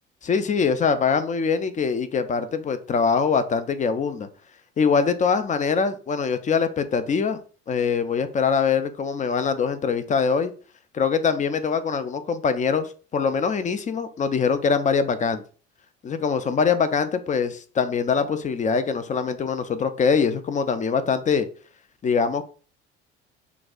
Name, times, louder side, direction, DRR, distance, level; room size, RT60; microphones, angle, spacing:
voice 1, 0.2-4.3 4.8-7.4 7.7-10.5 10.9-15.4 16.0-21.5 22.0-22.4, left 5 dB, 20° left, 11 dB, 0.5 m, -23 dB
5.8 x 2.5 x 2.3 m, 0.39 s
hypercardioid pair, 65°, 34 cm